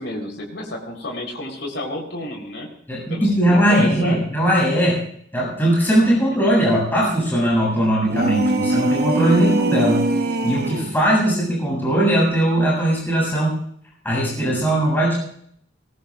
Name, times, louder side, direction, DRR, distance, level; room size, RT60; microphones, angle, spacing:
voice 1, 0.0-2.7 3.1-4.2 9.2-9.4, left 1 dB, 65° left, 0 dB, 4.1 m, -31 dB
voice 2, 2.9-5.0 5.3-13.5 14.0-15.1, right 1 dB, 10° left, -5 dB, 7.8 m, -19 dB
sound 1, 8.0-11.0, right 2 dB, 50° right, 1.0 m, -22 dB
22.0 x 20.0 x 2.5 m, 0.64 s
head